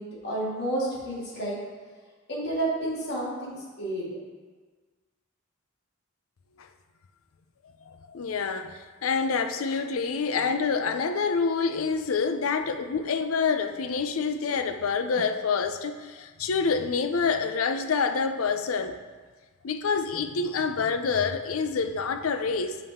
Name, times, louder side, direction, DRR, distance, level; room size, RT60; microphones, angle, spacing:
voice 1, 0.0-1.5 2.3-4.1, right 1 dB, 55° left, -6 dB, 2.2 m, -30 dB
voice 2, 7.9-19.0 19.6-22.8, left 5 dB, 90° left, 8 dB, 0.5 m, -27 dB
7.3 x 5.4 x 3.6 m, 1.4 s
head